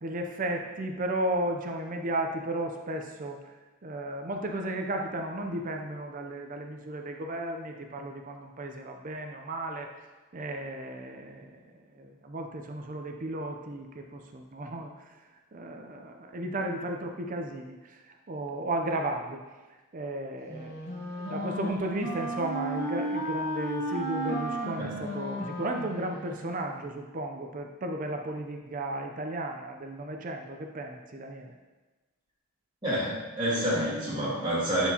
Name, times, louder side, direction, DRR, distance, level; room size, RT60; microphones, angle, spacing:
voice 1, 0.0-3.4 3.8-9.9 10.3-11.6 12.0-14.9 15.5-19.4 19.9-31.5, right 1 dB, 40° right, 3 dB, 0.5 m, -34 dB
Wind instrument woodwind instrument, 20.5-26.6, right 1 dB, 50° left, 1.3 m, -34 dB
voice 2, 32.8-34.9, right 1 dB, 20° right, -11 dB, 1.7 m, -28 dB
11.0 x 4.4 x 2.9 m, 1.2 s
head